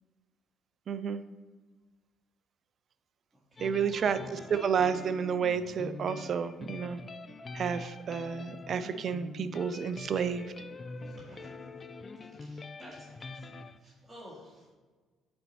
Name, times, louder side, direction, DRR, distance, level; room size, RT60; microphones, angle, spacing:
voice 1, 0.9-1.2 3.6-4.2 4.5-7.0 7.5-10.4, right 7 dB, 45° right, 13 dB, 0.3 m, -30 dB
voice 2, 3.3-4.1 11.0-11.7 12.2-14.7, equal, 5° right, -8 dB, 1.7 m, -53 dB
sound 1, 3.6-13.8, left 3 dB, 30° left, 0.3 m, -44 dB
8.9 x 4.3 x 2.8 m, 1.4 s
figure-of-eight pair, 45°, 0 cm